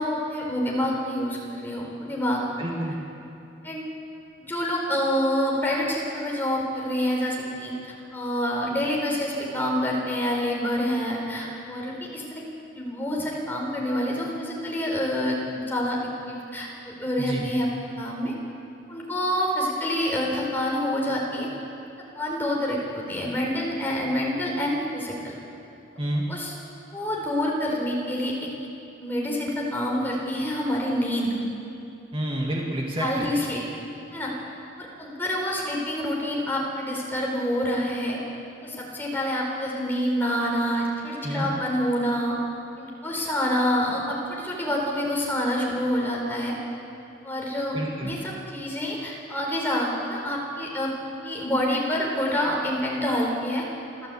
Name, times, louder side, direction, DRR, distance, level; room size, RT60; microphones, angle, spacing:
voice 1, 0.0-2.4 3.6-3.8 4.4-12.4 12.7-16.0 16.3-17.7 18.0-18.3 18.9-21.5 22.1-25.3 26.3-26.5 26.9-28.3 29.0-31.4 33.0-33.6 34.1-34.3 34.8-38.2 38.6-42.4 42.8-46.5 47.2-50.9 51.2-53.6, equal, 10° left, -3 dB, 4.2 m, -27 dB
voice 2, 2.6-3.0 17.2-17.4 26.0-26.2 32.1-33.3 41.2-41.5 47.7-48.2, right 1 dB, 30° right, -2 dB, 2.0 m, -29 dB
27.5 x 13.0 x 8.5 m, 2.7 s
head